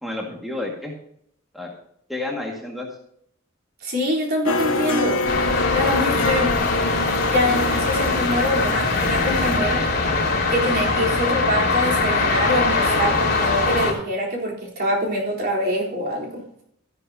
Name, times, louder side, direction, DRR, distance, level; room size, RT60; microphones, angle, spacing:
voice 1, 0.0-0.9 1.5-1.7 2.1-2.9 7.5-7.6 10.9-11.1, left 2 dB, ahead, -1 dB, 2.0 m, -31 dB
voice 2, 3.8-5.2 5.7-6.6 7.3-9.9 10.5-16.4, equal, 50° right, -2 dB, 3.9 m, -24 dB
sound 1, 4.5-9.6, left 2 dB, 75° left, 1.3 m, -26 dB
sound 2, 5.3-13.9, left 3 dB, 50° left, 3.1 m, -22 dB
13.5 x 11.0 x 2.8 m, 0.70 s
head